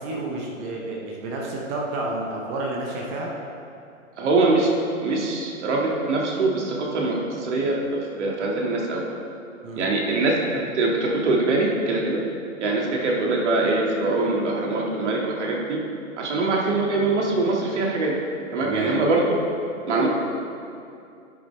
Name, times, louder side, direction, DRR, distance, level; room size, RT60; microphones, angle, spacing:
voice 1, 0.0-3.3 9.6-9.9 18.6-19.0, right 2 dB, 15° right, -2 dB, 0.5 m, -30 dB
voice 2, 4.2-4.7 5.0-9.0 9.8-12.2 12.6-15.8 16.2-18.1 18.5-19.4 19.9-20.1, right 2 dB, 55° right, -2 dB, 1.8 m, -23 dB
11.0 x 6.8 x 3.1 m, 2.6 s
hypercardioid pair, 135°, 41 cm